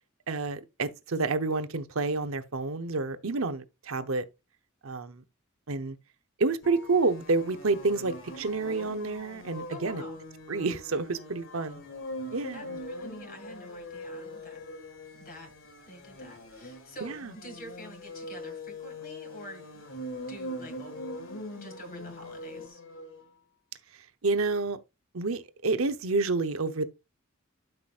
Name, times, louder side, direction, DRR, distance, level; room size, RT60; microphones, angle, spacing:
voice 1, 0.3-4.2 4.8-5.2 5.7-6.0 6.4-10.0 10.5-11.8 12.3-12.8 17.0-17.3 24.2-24.8 25.1-26.8, right 3 dB, 70° right, 0.9 m, -29 dB
sound 1, 6.6-23.2, left 1 dB, 65° left, 1.9 m, -42 dB
voice 2, 9.7-10.2 12.5-14.6 15.1-15.5 15.8-19.8 20.3-21.2 21.6-22.8, equal, 45° left, 2.1 m, -47 dB
12.0 x 5.9 x 2.5 m
head